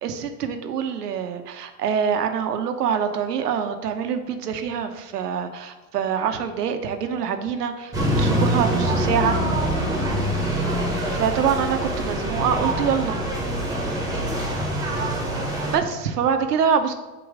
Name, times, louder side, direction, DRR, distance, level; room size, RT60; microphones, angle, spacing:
voice 1, 0.0-7.9 8.2-9.4 11.1-13.2 15.7-16.9, right 7 dB, 85° right, 7 dB, 1.0 m, -25 dB
sound 1, 7.9-15.8, right 1 dB, 10° right, 1.4 m, -24 dB
8.2 x 3.1 x 4.9 m, 1.2 s
hypercardioid pair, 120°, 46 cm